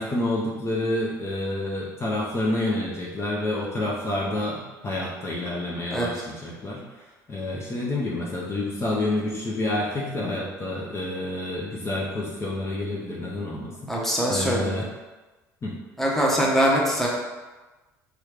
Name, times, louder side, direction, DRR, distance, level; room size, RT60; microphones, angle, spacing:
voice 1, 0.0-14.9 15.6-15.8, left 1 dB, 30° left, -4 dB, 0.7 m, -29 dB
voice 2, 13.9-14.9 16.0-17.1, equal, 5° left, -3 dB, 0.9 m, -23 dB
3.0 x 2.4 x 3.3 m, 1.2 s
hypercardioid pair, 65°, 9 cm